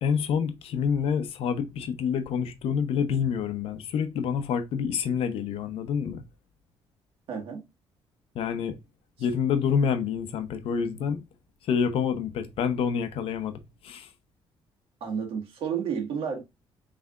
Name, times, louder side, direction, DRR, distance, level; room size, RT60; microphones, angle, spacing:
voice 1, 0.0-6.2 8.3-8.8 9.2-11.2 11.6-14.1, left 7 dB, 70° left, 0.8 m, -27 dB
voice 2, 7.3-7.6 15.0-16.4, right 7 dB, 65° right, 1.7 m, -31 dB
5.8 x 3.4 x 2.4 m
cardioid pair, 145°, 10 cm